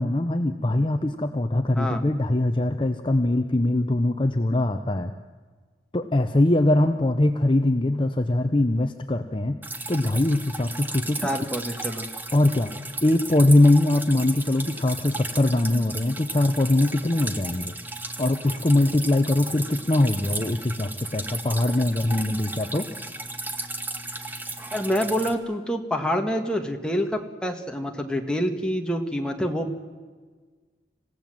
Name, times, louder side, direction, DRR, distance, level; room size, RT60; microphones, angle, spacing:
voice 1, 0.0-5.1 5.9-9.6 9.9-11.2 12.3-12.7 13.0-17.8 18.2-22.9, left 1 dB, 30° left, 7 dB, 0.7 m, -22 dB
Drip, 9.6-25.3, right 2 dB, 10° right, 1.1 m, -35 dB
voice 2, 11.2-12.1 24.7-29.8, equal, 5° left, 3 dB, 1.6 m, -27 dB
27.0 x 16.5 x 7.7 m, 1.5 s
head